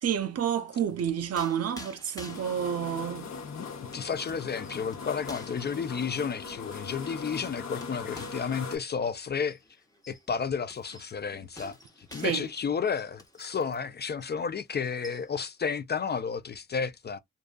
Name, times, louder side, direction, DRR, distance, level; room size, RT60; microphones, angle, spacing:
voice 1, 0.0-3.3 12.1-12.5, right 9 dB, 50° right, 0.4 m, -29 dB
sound 1, 0.6-13.9 14.2-14.4 14.7-15.5, left 1 dB, 10° left, 0.9 m, -51 dB
sound 2, 2.3-8.8, left 5 dB, 55° left, 0.9 m, -40 dB
voice 2, 3.9-9.6 10.1-17.2, left 6 dB, 30° left, 0.4 m, -32 dB
2.5 x 2.3 x 2.2 m
cardioid pair, 60°, 33 cm